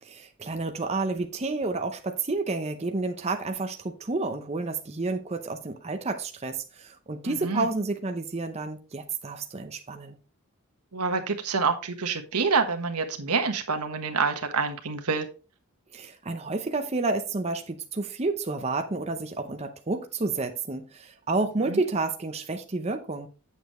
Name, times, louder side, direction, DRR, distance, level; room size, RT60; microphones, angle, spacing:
voice 1, 0.0-10.2 15.9-23.3, right 3 dB, 30° right, 0.7 m, -30 dB
voice 2, 7.2-7.7 10.9-15.3 21.7-21.8, right 4 dB, 90° right, 1.3 m, -27 dB
8.5 x 7.0 x 3.1 m
head